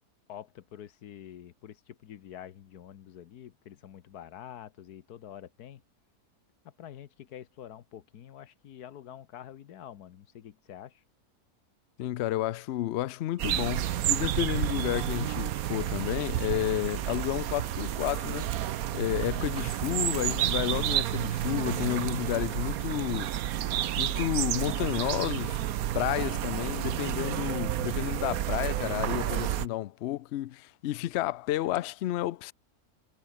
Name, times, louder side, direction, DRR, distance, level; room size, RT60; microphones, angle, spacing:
voice 1, 0.3-5.8 6.6-11.0, left 10 dB, 90° left, 1.5 m, -47 dB
voice 2, 12.0-18.5 18.9-23.5 24.0-25.6 25.9-32.5, left 14 dB, 70° left, 0.6 m, -31 dB
sound 1, 13.4-29.7, right 12 dB, 70° right, 1.2 m, -30 dB
omnidirectional pair, 1.6 m